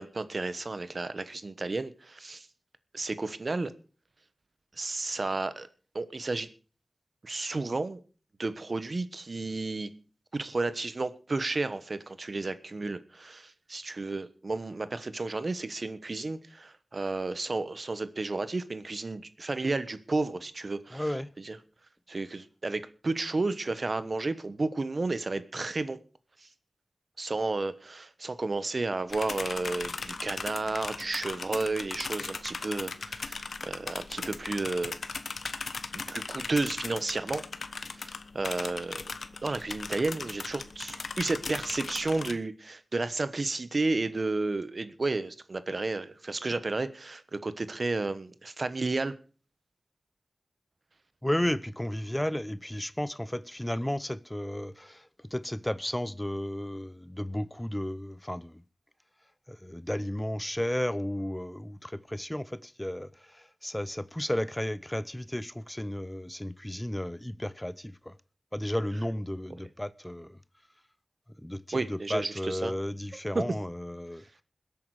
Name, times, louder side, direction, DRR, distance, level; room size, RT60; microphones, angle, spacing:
voice 1, 0.0-2.5 2.9-3.7 4.8-5.7 5.9-6.5 7.2-8.0 8.4-9.9 10.3-21.1 21.4-21.6 22.1-26.0 26.4-26.5 27.2-34.9 35.9-37.4 38.0-39.0 39.4-49.1 71.7-72.7 73.1-73.4, right 3 dB, 55° right, 1.2 m, -32 dB
voice 2, 20.9-21.3 51.2-58.6 59.5-68.1 68.5-70.4 71.4-74.4, left 1 dB, 10° left, 0.6 m, -33 dB
sound 1, 29.1-42.3, left 4 dB, 85° left, 1.1 m, -38 dB
21.0 x 8.6 x 4.9 m
wide cardioid pair, 55°, 0 cm